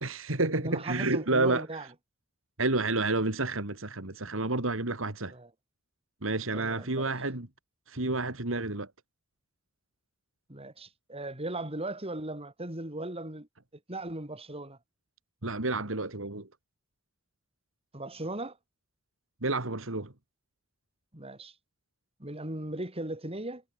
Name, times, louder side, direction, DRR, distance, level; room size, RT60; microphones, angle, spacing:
voice 1, 0.0-1.6 2.6-5.3 6.2-7.5 7.9-8.9 15.4-16.5 19.4-20.1, right 2 dB, 70° right, 2.7 m, -30 dB
voice 2, 0.5-1.9 5.3-5.5 6.5-7.1 10.5-13.5 13.9-14.8 17.9-18.6 21.1-21.5 22.2-23.6, right 1 dB, 30° right, 5.2 m, -37 dB
head